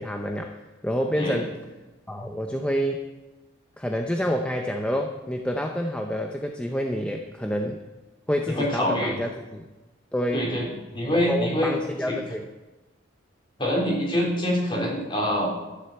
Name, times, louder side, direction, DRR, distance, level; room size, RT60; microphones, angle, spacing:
voice 1, 0.0-1.5 2.1-3.1 3.8-7.8 8.3-9.6 10.1-10.5 11.1-12.5, equal, 5° left, 3 dB, 0.7 m, -28 dB
voice 2, 8.5-9.2 10.3-11.8 12.1-12.2 13.6-15.5, equal, 25° left, -2 dB, 3.6 m, -25 dB
13.0 x 7.9 x 7.8 m, 1.1 s
head